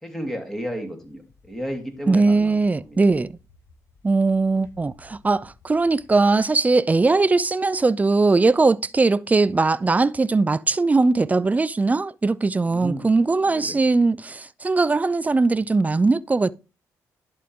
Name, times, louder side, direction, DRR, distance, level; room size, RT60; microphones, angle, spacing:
voice 1, 0.0-2.6 2.8-3.0 12.7-13.1 13.5-13.8, equal, 5° left, 2.8 m, -32 dB
sound 1, 1.0-6.7, left 3 dB, 40° left, 4.8 m, -56 dB
voice 2, 2.1-3.4 4.0-16.5, right 3 dB, 20° right, 0.4 m, -20 dB
11.0 x 3.7 x 4.7 m
supercardioid pair, 65°, 7 cm